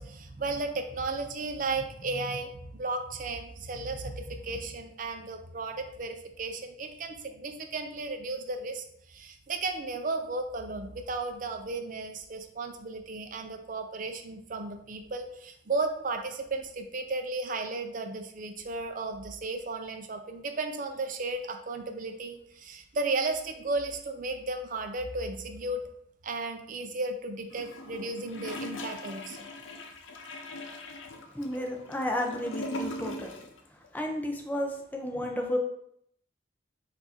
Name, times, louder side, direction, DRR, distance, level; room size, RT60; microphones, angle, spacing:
voice 1, 0.0-25.8 26.2-29.5, right 3 dB, 45° right, 6 dB, 0.5 m, -34 dB
Gurgling / Toilet flush, 27.5-33.6 33.8-33.9, left 1 dB, 90° left, 0.6 m, -40 dB
voice 2, 31.3-33.3 33.9-35.6, left 1 dB, 10° left, 1 dB, 0.6 m, -32 dB
4.5 x 2.6 x 4.2 m, 0.71 s
head